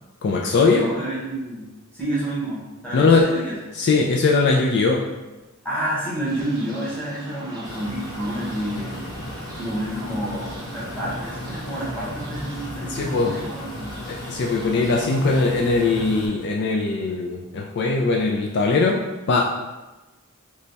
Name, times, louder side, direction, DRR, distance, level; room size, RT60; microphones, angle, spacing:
voice 1, 0.2-0.9 2.9-3.3 3.7-5.0 12.8-13.3 14.1-19.0 19.3-19.4, left 3 dB, 50° left, 0 dB, 0.3 m, -20 dB
voice 2, 0.7-1.7 1.9-3.5 5.6-9.1 9.6-14.0, right 1 dB, 5° left, -9 dB, 1.2 m, -29 dB
sound 1, 6.3-15.4, equal, 15° right, 0.6 m, -41 dB
sound 2, 7.6-16.3, equal, 85° left, 0.7 m, -36 dB
3.2 x 2.2 x 3.9 m, 1.1 s
head